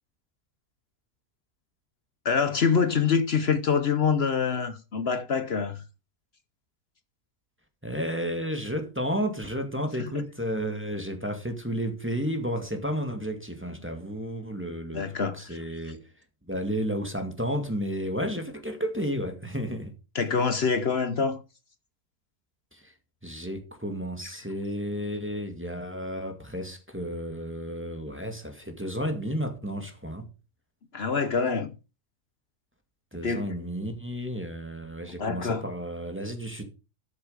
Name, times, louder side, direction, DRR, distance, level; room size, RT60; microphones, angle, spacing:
voice 1, 2.2-5.8 10.0-10.2 14.9-15.6 20.1-21.4 30.9-31.7 33.2-33.4 35.2-35.6, left 5 dB, 50° left, 1.0 m, -25 dB
voice 2, 7.8-16.0 16.5-19.9 22.7-22.9 23.2-30.3 33.1-36.6, equal, 10° right, 2.0 m, -32 dB
13.0 x 7.2 x 5.0 m
omnidirectional pair, 1.5 m